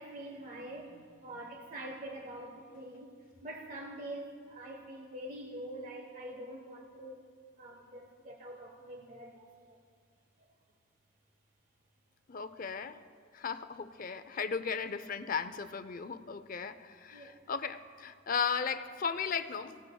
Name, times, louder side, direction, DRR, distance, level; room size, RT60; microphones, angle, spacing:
voice 1, 0.0-3.1 3.4-7.2 7.6-9.8 17.1-17.5, right 1 dB, 45° right, 1 dB, 1.1 m, -45 dB
voice 2, 12.3-13.0 13.3-19.8, left 6 dB, 50° left, 12 dB, 0.6 m, -36 dB
24.5 x 17.0 x 2.3 m, 2.1 s
head